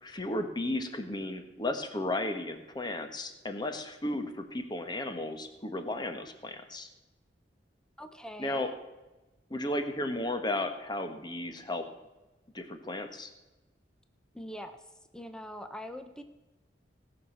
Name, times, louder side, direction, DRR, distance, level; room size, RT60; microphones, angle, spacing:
voice 1, 0.0-6.9 8.4-8.7 9.5-11.9 12.5-13.3, left 1 dB, 25° left, 7 dB, 1.4 m, -34 dB
voice 2, 8.0-8.7 14.3-14.8 15.1-16.2, equal, 5° left, 8 dB, 0.8 m, -43 dB
18.5 x 6.4 x 7.6 m, 1.1 s
head